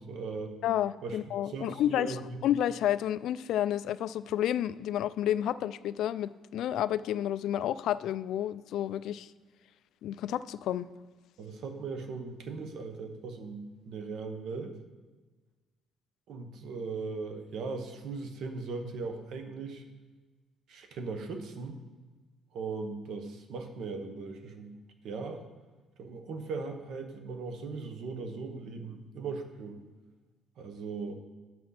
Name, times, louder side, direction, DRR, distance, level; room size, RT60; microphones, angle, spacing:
voice 1, 0.0-0.6 1.0-1.2 1.5-2.4 11.4-14.7 16.3-19.8 20.7-21.8 22.5-24.8 25.0-25.5 26.0-29.8 30.6-31.1, right 4 dB, 55° right, 6 dB, 1.0 m, -38 dB
voice 2, 0.6-9.3 10.0-10.9, left 11 dB, 65° left, 15 dB, 0.3 m, -30 dB
7.4 x 6.1 x 5.7 m, 1.3 s
cardioid pair, 165°, 0 cm